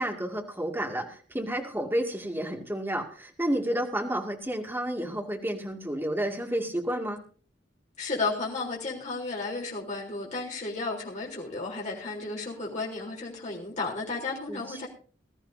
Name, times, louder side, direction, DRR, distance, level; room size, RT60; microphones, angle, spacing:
voice 1, 0.0-7.2 14.5-14.9, right 1 dB, 10° right, 1 dB, 2.3 m, -31 dB
voice 2, 8.0-14.9, left 3 dB, 40° left, -3 dB, 3.7 m, -33 dB
20.5 x 13.5 x 2.8 m, 0.41 s
head